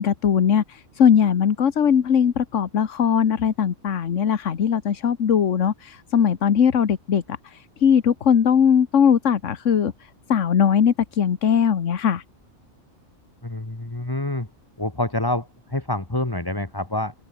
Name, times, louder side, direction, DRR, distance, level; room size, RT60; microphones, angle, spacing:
voice 1, 0.0-12.2, left 7 dB, 65° left, 1.5 m, -20 dB
voice 2, 13.4-14.5 14.8-17.1, left 1 dB, 15° left, 1.8 m, -27 dB
open air
omnidirectional pair, 1.4 m